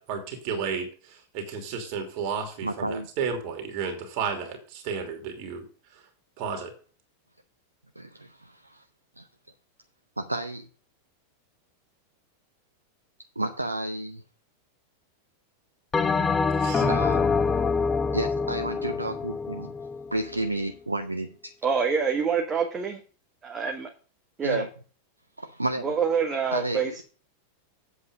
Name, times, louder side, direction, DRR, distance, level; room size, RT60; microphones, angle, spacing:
voice 1, 0.1-5.6 6.4-6.7 16.6-16.8, right 6 dB, 45° right, 5 dB, 2.8 m, -32 dB
voice 2, 2.6-3.1 8.0-8.8 9.2-9.3 10.2-10.7 13.4-14.2 16.8-17.2 18.1-19.7 20.1-21.5 24.4-24.7 25.4-25.9 26.5-26.9, right 1 dB, 85° right, 8 dB, 0.7 m, -31 dB
Bell, 15.9-20.5, left 5 dB, 15° left, 0.7 m, -26 dB
voice 3, 21.6-23.0 23.4-23.9 24.4-24.7 25.8-27.0, right 6 dB, 20° right, 3 dB, 1.4 m, -26 dB
8.3 x 7.6 x 5.1 m, 0.39 s
figure-of-eight pair, 90°, 0 cm